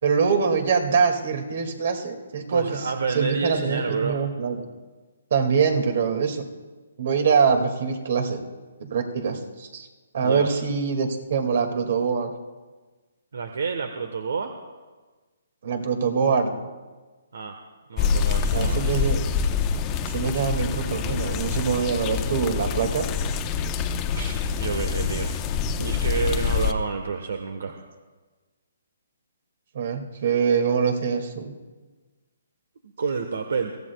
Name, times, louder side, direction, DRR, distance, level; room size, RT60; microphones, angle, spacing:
voice 1, 0.0-2.9 3.1-4.6 5.3-6.5 7.0-8.4 8.8-9.9 10.1-12.3 15.6-16.5 18.5-19.4 20.1-23.1 29.7-31.5, right 6 dB, 55° right, 5 dB, 2.2 m, -24 dB
voice 2, 2.5-4.2 10.2-10.5 13.3-14.5 17.3-17.6 17.9-19.0 24.1-25.3 25.8-27.8 33.0-33.7, right 5 dB, 75° right, 6 dB, 1.2 m, -29 dB
sound 1, 18.0-26.7, left 6 dB, 25° left, 0.8 m, -26 dB
23.0 x 16.0 x 2.3 m, 1.3 s
hypercardioid pair, 155°, 0 cm